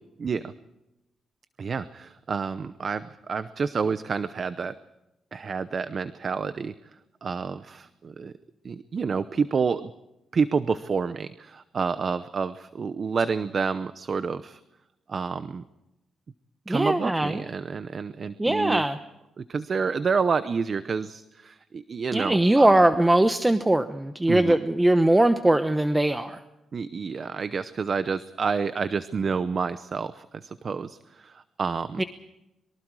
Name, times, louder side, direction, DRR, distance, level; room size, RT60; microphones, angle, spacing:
voice 1, 0.2-0.5 1.6-4.7 5.3-6.7 7.2-8.3 8.6-9.9 10.3-14.6 15.1-15.6 16.7-18.8 19.4-22.7 24.3-24.6 26.7-32.0, right 5 dB, 45° right, 13 dB, 0.8 m, -29 dB
voice 2, 16.7-17.4 18.4-19.0 22.1-26.4 32.0-32.1, right 1 dB, 10° right, 10 dB, 0.9 m, -21 dB
25.5 x 23.5 x 4.8 m, 0.92 s
cardioid pair, 100°, 0 cm